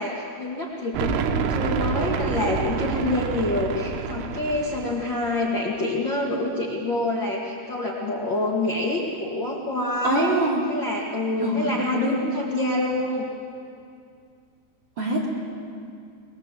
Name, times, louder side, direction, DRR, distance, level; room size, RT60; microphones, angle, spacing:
voice 1, 0.0-10.3 10.7-13.3, left 2 dB, 70° left, -3 dB, 1.1 m, -26 dB
sound 1, 0.9-5.3, right 6 dB, 90° right, 3.8 m, -28 dB
voice 2, 10.0-10.6 11.4-11.7 11.9-12.3 15.0-15.3, right 1 dB, 25° right, -4 dB, 3.4 m, -24 dB
24.0 x 21.0 x 7.6 m, 2.4 s
omnidirectional pair, 5.7 m